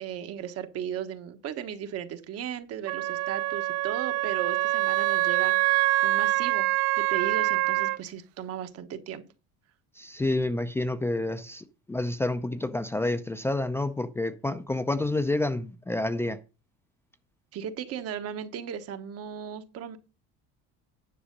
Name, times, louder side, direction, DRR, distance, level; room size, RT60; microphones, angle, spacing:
voice 1, 0.0-6.7 7.0-9.2 17.5-20.0, right 9 dB, 55° right, 1.2 m, -36 dB
Wind instrument woodwind instrument, 2.9-8.0, right 20 dB, 80° right, 0.6 m, -25 dB
voice 2, 10.0-16.4, left 2 dB, 10° left, 0.5 m, -29 dB
10.0 x 6.2 x 5.2 m
cardioid pair, 135°, 29 cm